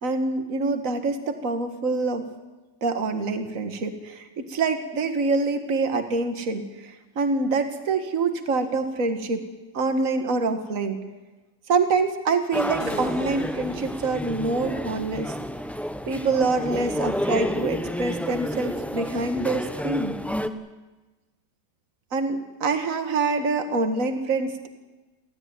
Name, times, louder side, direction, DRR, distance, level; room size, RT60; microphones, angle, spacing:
voice 1, 0.0-2.2 2.8-9.4 9.7-11.0 11.7-15.4 16.1-20.2 22.1-24.7, right 3 dB, 50° right, 7 dB, 2.1 m, -25 dB
sound 1, 12.5-20.5, equal, ahead, 0.8 m, -30 dB
sound 2, 12.8-15.2, left 2 dB, 85° left, 6.0 m, -41 dB
29.5 x 13.0 x 9.6 m, 1.2 s
omnidirectional pair, 1.8 m